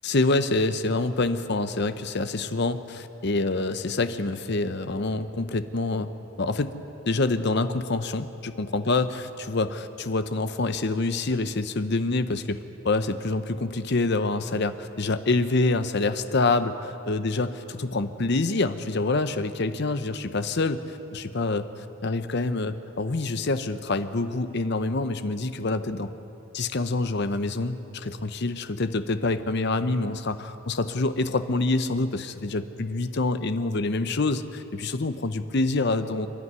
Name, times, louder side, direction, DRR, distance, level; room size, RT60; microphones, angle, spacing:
voice 1, 0.0-6.1 6.4-6.7 7.1-12.6 12.8-21.7 22.0-26.1 26.5-36.3, left 3 dB, 50° left, 11 dB, 0.7 m, -26 dB
25.0 x 11.0 x 9.5 m, 3.0 s
head